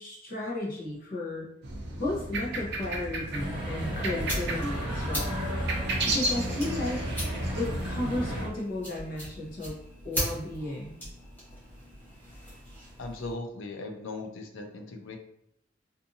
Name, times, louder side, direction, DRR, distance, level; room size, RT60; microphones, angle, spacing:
voice 1, 0.0-1.5 2.0-5.4 6.0-7.0 7.6-9.8 10.0-11.0, left 1 dB, 45° left, -4 dB, 0.9 m, -34 dB
sound 1, 1.6-8.4, right 2 dB, 60° right, 0.5 m, -34 dB
sound 2, 3.3-8.5, equal, 25° right, 1.0 m, -34 dB
sound 3, 3.6-13.3, equal, 10° left, 1.1 m, -40 dB
voice 2, 13.0-15.2, left 2 dB, 75° left, 5 dB, 0.4 m, -38 dB
2.6 x 2.6 x 2.6 m, 0.75 s
head